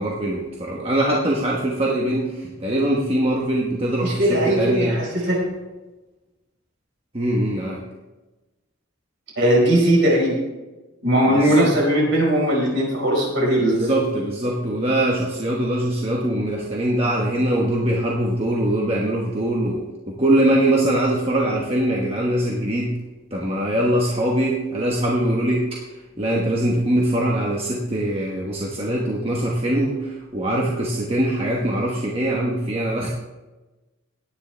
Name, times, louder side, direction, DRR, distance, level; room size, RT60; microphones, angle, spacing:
voice 1, 0.0-5.3 7.1-7.8 11.3-11.7 13.6-23.0 23.3-33.1, right 1 dB, 25° right, -3 dB, 1.2 m, -22 dB
voice 2, 4.0-5.5 9.4-10.4 11.0-13.9, right 1 dB, 60° right, -2 dB, 5.0 m, -19 dB
17.5 x 9.8 x 3.4 m, 1.1 s
head